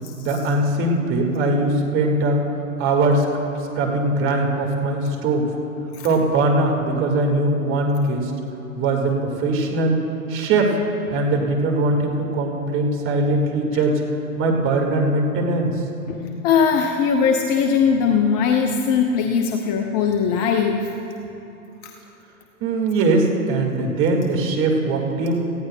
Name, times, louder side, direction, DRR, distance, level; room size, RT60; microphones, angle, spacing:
voice 1, 0.2-2.4 2.8-3.3 3.7-5.5 6.0-8.3 8.8-9.1 9.4-10.0 10.3-10.8 11.1-14.0 14.4-15.7 22.6-25.4, right 2 dB, 30° right, 1 dB, 1.8 m, -21 dB
voice 2, 16.4-20.9, left 6 dB, 25° left, 4 dB, 0.6 m, -20 dB
18.0 x 15.5 x 2.2 m, 3.0 s
hypercardioid pair, 115°, 43 cm